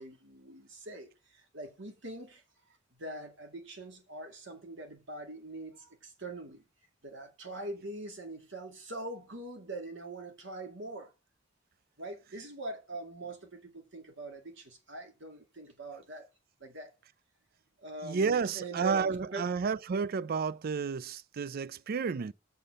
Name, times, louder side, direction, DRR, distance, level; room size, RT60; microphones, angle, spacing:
voice 1, 0.0-2.4 3.0-6.6 7.0-11.1 12.0-16.3 16.6-16.9 17.8-19.5, right 2 dB, 65° right, 2.2 m, -43 dB
voice 2, 18.0-22.3, right 5 dB, 50° right, 0.4 m, -31 dB
6.6 x 5.6 x 6.6 m
head